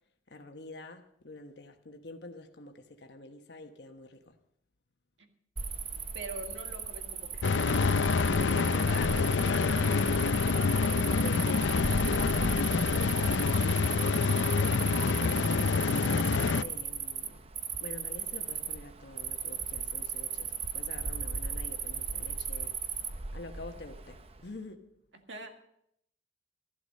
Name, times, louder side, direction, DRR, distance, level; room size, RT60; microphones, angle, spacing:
voice 1, 0.3-4.3 8.9-17.4 17.8-22.7 23.3-24.9, left 2 dB, 65° left, 1.2 m, -46 dB
Cricket, 5.6-24.5, right 6 dB, 35° right, 0.7 m, -37 dB
voice 2, 5.6-9.4 25.3-25.5, right 2 dB, 85° right, 1.9 m, -45 dB
sound 1, 7.4-16.6, left 4 dB, 90° left, 0.5 m, -27 dB
sound 2, 11.7-13.9, equal, 50° right, 7.2 m, -43 dB
14.5 x 11.5 x 5.3 m
head